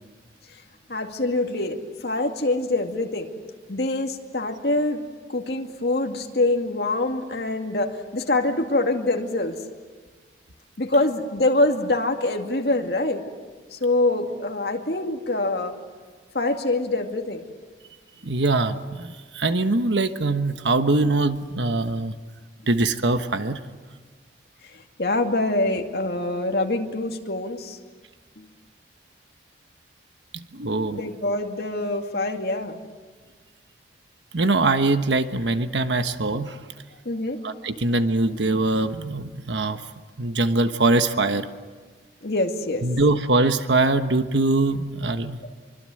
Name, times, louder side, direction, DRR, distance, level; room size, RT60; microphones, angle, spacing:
voice 1, 0.9-3.3 3.7-5.0 5.3-9.6 10.8-13.2 13.7-15.8 16.3-17.4 24.7-27.8 28.4-28.5 30.9-32.8 37.0-37.4 42.2-42.8, left 2 dB, 65° left, 3 dB, 2.3 m, -25 dB
voice 2, 18.2-22.1 22.7-23.6 30.5-31.0 34.3-36.6 37.4-39.8 40.2-41.5 42.8-45.4, right 2 dB, 85° right, 9 dB, 1.2 m, -22 dB
25.0 x 24.5 x 7.8 m, 1.5 s
head